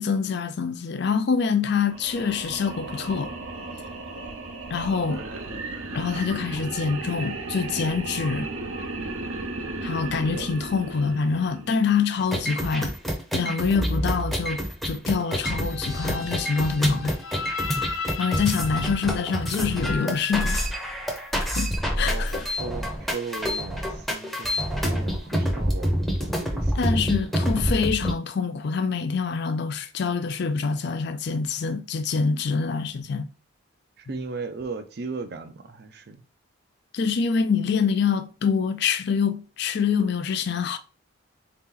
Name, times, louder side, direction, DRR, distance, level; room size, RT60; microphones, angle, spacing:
voice 1, 0.0-3.3 4.7-5.2 5.9-8.5 9.8-12.9 13.3-17.2 18.2-20.7 21.6-22.5 26.8-33.3 34.1-34.2 36.9-40.8, left 5 dB, 50° left, 0.4 m, -25 dB
sound 1, 1.8-12.1, right 2 dB, 85° right, 0.8 m, -35 dB
voice 2, 5.1-5.7 10.3-10.5 22.1-27.1 34.0-36.2, right 4 dB, 50° right, 0.5 m, -37 dB
sound 2, 12.2-28.1, equal, ahead, 0.7 m, -27 dB
sound 3, 15.6-21.6, left 4 dB, 75° left, 0.8 m, -35 dB
4.0 x 2.9 x 3.8 m
head